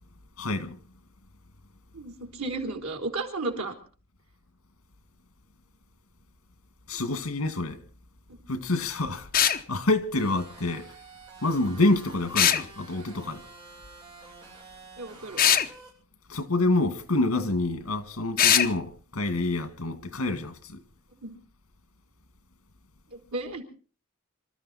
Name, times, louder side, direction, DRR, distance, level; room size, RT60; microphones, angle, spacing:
voice 1, 0.4-0.8 6.9-7.8 8.5-11.0 11.4-13.4 16.3-20.8, left 2 dB, 80° left, 2.0 m, -27 dB
voice 2, 1.9-3.8 8.3-8.5 15.0-15.4 21.2-21.4 23.1-23.6, right 2 dB, 80° right, 3.8 m, -34 dB
sound 1, 9.3-9.6 12.3-12.6 15.4-15.7 18.4-18.7, left 9 dB, 45° left, 0.9 m, -20 dB
sound 2, 10.1-15.9, right 3 dB, 20° right, 7.7 m, -49 dB
25.5 x 13.5 x 4.2 m
head